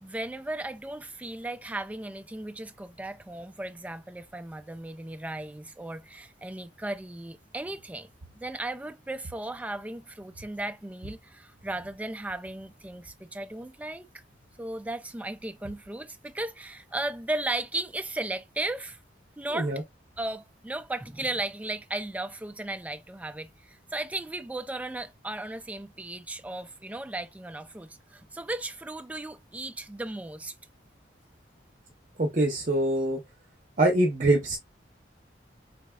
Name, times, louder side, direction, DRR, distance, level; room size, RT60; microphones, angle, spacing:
voice 1, 0.0-8.1 8.3-14.1 14.6-19.0 19.4-19.7 20.2-30.5, right 2 dB, 10° right, 0.3 m, -36 dB
voice 2, 19.5-19.8 32.2-33.2 33.8-34.6, right 1 dB, 45° right, 0.7 m, -24 dB
4.2 x 3.4 x 2.2 m
head